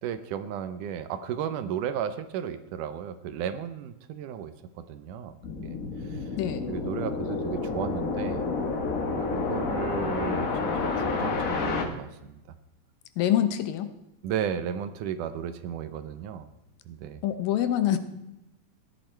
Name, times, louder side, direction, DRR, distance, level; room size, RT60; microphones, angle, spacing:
voice 1, 0.0-5.4 5.6-6.3 6.7-8.5 9.2-12.4 14.2-16.5 16.9-17.2, right 9 dB, 75° right, 12 dB, 2.2 m, -34 dB
sound 1, 5.4-11.9, left 4 dB, 65° left, 0.8 m, -29 dB
voice 2, 13.2-13.9 17.2-18.0, left 11 dB, 80° left, 11 dB, 2.6 m, -25 dB
15.5 x 10.5 x 4.5 m, 0.91 s
omnidirectional pair, 3.9 m